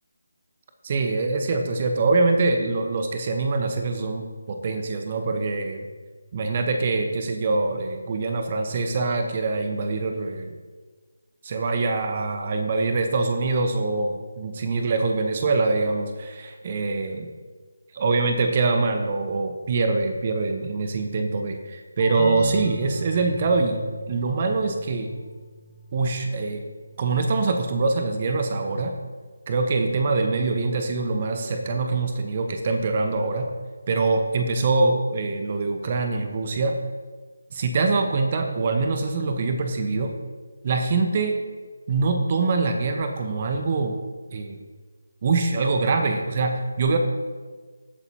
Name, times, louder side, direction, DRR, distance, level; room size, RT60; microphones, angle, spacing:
voice 1, 0.8-5.9 6.3-10.5 11.4-17.3 17.9-23.8 24.1-25.1 25.9-26.6 27.0-28.9 29.5-33.5 33.9-36.8 37.5-40.1 40.6-41.3 41.9-44.0 44.3-44.6 45.2-47.0, right 3 dB, 30° right, 5 dB, 0.9 m, -24 dB
sound 1, 22.0-27.4, right 1 dB, 35° left, 1.4 m, -36 dB
18.0 x 8.2 x 2.9 m, 1.4 s
figure-of-eight pair, 155°, 0 cm